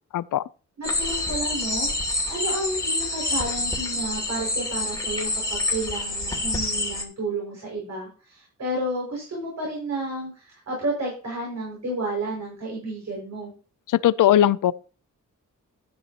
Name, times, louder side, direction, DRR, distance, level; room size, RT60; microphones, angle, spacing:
voice 1, 0.1-0.4 13.9-14.7, left 12 dB, 90° left, 0.5 m, -19 dB
sound 1, 0.8-7.0, left 2 dB, 10° left, 2.6 m, -27 dB
voice 2, 0.8-13.5, right 1 dB, 60° right, 6.0 m, -31 dB
13.0 x 9.2 x 2.9 m
wide cardioid pair, 120°, 31 cm